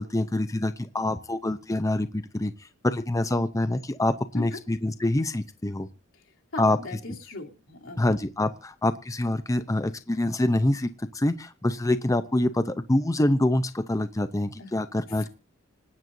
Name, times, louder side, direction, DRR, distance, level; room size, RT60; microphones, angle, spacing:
voice 1, 0.0-5.9 6.6-6.8 8.0-15.3, left 1 dB, 15° left, 11 dB, 0.6 m, -26 dB
voice 2, 6.5-8.0 14.6-14.7, left 3 dB, 75° left, 1 dB, 3.1 m, -38 dB
26.5 x 9.3 x 2.7 m, 0.31 s
head